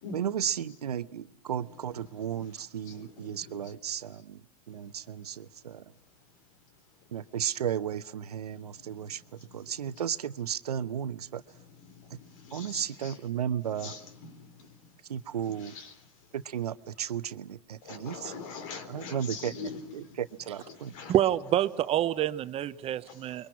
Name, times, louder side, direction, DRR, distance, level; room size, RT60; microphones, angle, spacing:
voice 1, 0.1-5.8 7.1-11.4 12.1-12.2 12.5-13.9 15.1-15.7 16.3-18.4 18.9-20.9, right 9 dB, 80° right, 1.0 m, -34 dB
voice 2, 2.9-3.6 12.2-13.2 13.8-14.5 15.6-15.9 17.8-20.1 20.9-21.2, left 4 dB, 55° left, 4.2 m, -42 dB
voice 3, 21.1-23.5, right 12 dB, 30° right, 0.9 m, -27 dB
30.0 x 23.0 x 6.0 m
hypercardioid pair, 105°, 20 cm